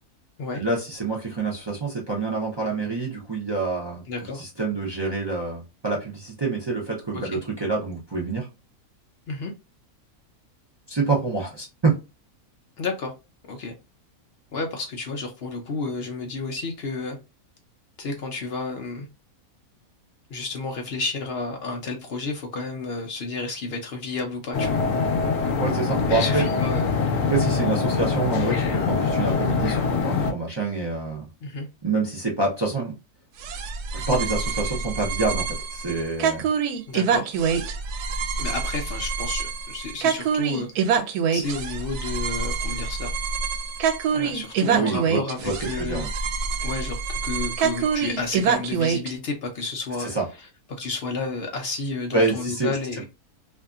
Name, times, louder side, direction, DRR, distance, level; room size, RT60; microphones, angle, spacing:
voice 1, 0.5-4.0 4.3-8.5 10.9-11.9 25.6-26.5 27.3-31.2 31.8-33.0 33.9-36.5 44.7-46.1 50.0-50.2 52.1-52.7, right 3 dB, 45° right, 0.3 m, -27 dB
voice 2, 4.1-4.4 7.1-7.4 9.3-9.5 12.8-13.1 13.5-13.7 14.5-17.2 18.0-19.1 20.3-24.8 26.2-27.0 31.4-31.7 36.9-37.3 38.4-43.1 44.1-46.1 46.6-50.1 50.4-53.1, left 3 dB, 65° left, 0.6 m, -31 dB
sound 1, 24.5-30.3, left 4 dB, 80° left, 1.1 m, -23 dB
sound 2, 33.4-49.1, right 6 dB, 90° right, 1.1 m, -26 dB
2.8 x 2.5 x 2.3 m
omnidirectional pair, 1.6 m